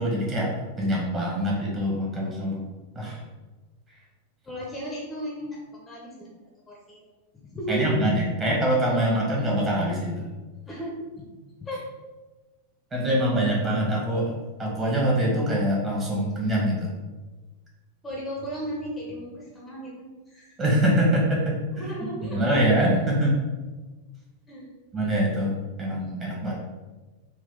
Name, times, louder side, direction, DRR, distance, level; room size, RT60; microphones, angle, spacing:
voice 1, 0.0-2.6 2.9-3.2 7.7-10.3 12.9-14.3 14.6-16.9 20.6-21.8 22.2-23.4 24.9-26.5, right 1 dB, 20° right, -4 dB, 1.3 m, -24 dB
voice 2, 4.4-6.3 6.7-7.0 7.4-7.8 10.7-11.2 11.6-11.8 18.0-20.6 21.8-22.4 24.5-24.8, right 1 dB, 15° left, -4 dB, 0.8 m, -35 dB
3.7 x 2.5 x 3.6 m, 1.2 s
figure-of-eight pair, 90°, 0 cm